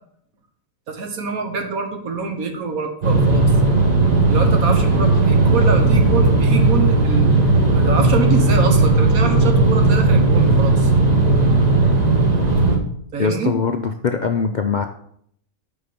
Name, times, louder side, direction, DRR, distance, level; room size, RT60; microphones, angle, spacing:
voice 1, 0.9-3.5 4.3-7.3 7.7-10.9 13.1-13.6, right 4 dB, 85° right, 5 dB, 1.6 m, -25 dB
sound 1, 3.0-12.8, right 3 dB, 30° right, 1.3 m, -15 dB
voice 2, 13.2-14.8, left 5 dB, 70° left, 5 dB, 0.4 m, -21 dB
8.5 x 4.5 x 5.7 m, 0.67 s
omnidirectional pair, 1.5 m